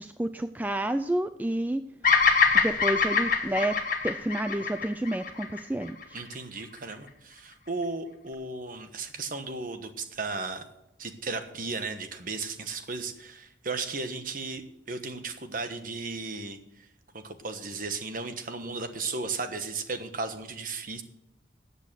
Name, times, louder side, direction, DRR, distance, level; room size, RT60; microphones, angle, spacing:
voice 1, 0.0-1.9 2.5-6.2, right 1 dB, 10° right, 10 dB, 0.3 m, -30 dB
Bird vocalization bird call bird song, 2.0-6.3, left 5 dB, 45° left, 1.6 m, -24 dB
voice 2, 6.1-10.6 11.0-16.9 17.1-21.0, right 3 dB, 45° right, 8 dB, 1.2 m, -35 dB
13.5 x 8.3 x 6.2 m, 0.89 s
head